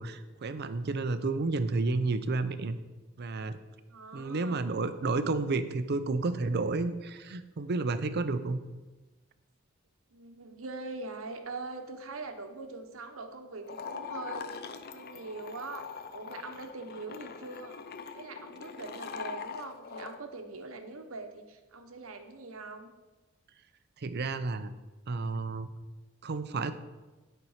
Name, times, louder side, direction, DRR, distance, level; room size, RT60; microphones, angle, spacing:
voice 1, 0.0-2.8 3.2-3.6 4.1-8.6 24.0-24.7 25.1-25.7 26.2-26.7, right 3 dB, 50° right, 11 dB, 0.5 m, -31 dB
voice 2, 3.9-4.7 10.1-14.6 14.9-15.9 16.1-17.8 18.1-22.9, right 3 dB, 80° right, 6 dB, 1.0 m, -42 dB
sound 1, 13.6-20.2, left 6 dB, 50° left, 0.5 m, -42 dB
10.5 x 4.5 x 5.7 m, 1.2 s
head